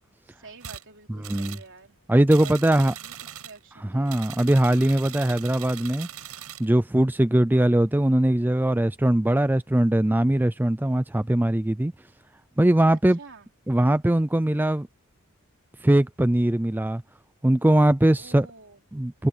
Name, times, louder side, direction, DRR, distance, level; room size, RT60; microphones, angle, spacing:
voice 1, 0.3-2.0 2.4-4.3 7.5-7.8 12.9-13.5 18.2-18.8, right 4 dB, 60° right, 3.6 m, -48 dB
sound 1, 0.6-0.8 1.2-1.7 2.3-3.6 4.1-6.7, right 10 dB, 85° right, 5.6 m, -40 dB
voice 2, 2.1-2.9 3.9-6.1 6.6-11.9 12.6-13.2 13.7-14.9 15.8-17.0 17.4-18.5 18.9-19.3, right 1 dB, 10° right, 0.4 m, -21 dB
head